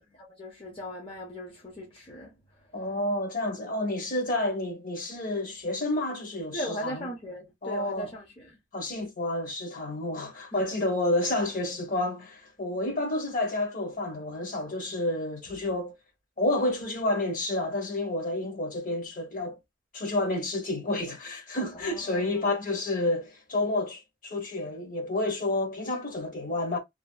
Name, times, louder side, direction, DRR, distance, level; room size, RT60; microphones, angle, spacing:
voice 1, 0.0-2.3 6.5-8.6 10.5-10.7 21.8-22.5, equal, 30° left, 0.7 m, -39 dB
voice 2, 2.7-7.1 7.6-8.1 8.7-15.9 16.4-19.6 19.9-26.8, left 2 dB, 45° left, 1.0 m, -30 dB
2.7 x 2.4 x 2.3 m
head